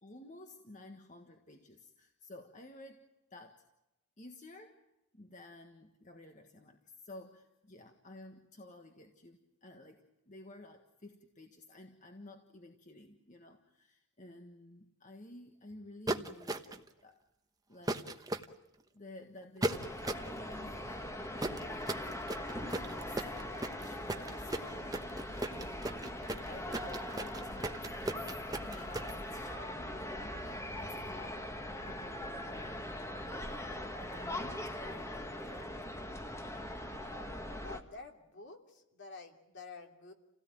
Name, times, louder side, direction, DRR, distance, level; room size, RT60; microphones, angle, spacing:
voice 1, 0.0-3.7 4.2-4.9 5.1-17.2 17.7-18.3 18.9-28.1 28.6-33.7 33.9-35.7, left 2 dB, 35° left, 4 dB, 1.6 m, -53 dB
sound 1, 16.1-16.9 17.9-18.5 19.6-20.3 21.4-29.1, right 1 dB, 15° right, 1.1 m, -36 dB
sound 2, 19.7-37.8, left 1 dB, 15° left, 1.6 m, -41 dB
voice 2, 37.5-40.1, left 3 dB, 55° left, 4 dB, 3.0 m, -49 dB
29.0 x 17.0 x 9.2 m, 0.90 s
head